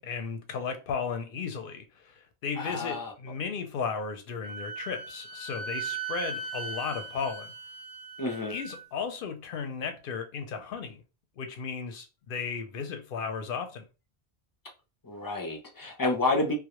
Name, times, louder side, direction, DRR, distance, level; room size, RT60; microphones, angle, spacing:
voice 1, 0.0-7.5 8.5-11.0 11.4-13.9, left 5 dB, 65° left, 0.7 m, -35 dB
voice 2, 2.6-3.1 8.2-8.6 15.0-16.5, left 2 dB, 35° left, 0.3 m, -29 dB
Wind instrument woodwind instrument, 4.4-8.8, right 5 dB, 45° right, 0.6 m, -38 dB
2.2 x 2.0 x 2.9 m
omnidirectional pair, 1.1 m